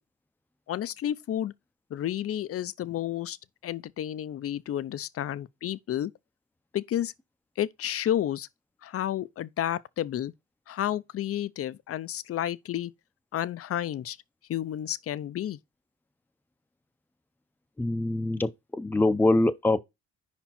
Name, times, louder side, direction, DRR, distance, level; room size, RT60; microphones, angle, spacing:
voice 1, 0.7-1.5 1.9-3.4 3.6-6.1 6.7-7.1 7.6-8.5 8.8-10.3 10.7-12.9 13.3-14.2 14.5-15.6, left 11 dB, 50° left, 0.5 m, -31 dB
voice 2, 17.8-19.8, left 2 dB, 5° left, 0.6 m, -24 dB
5.1 x 4.4 x 5.8 m
cardioid pair, 90°, 30 cm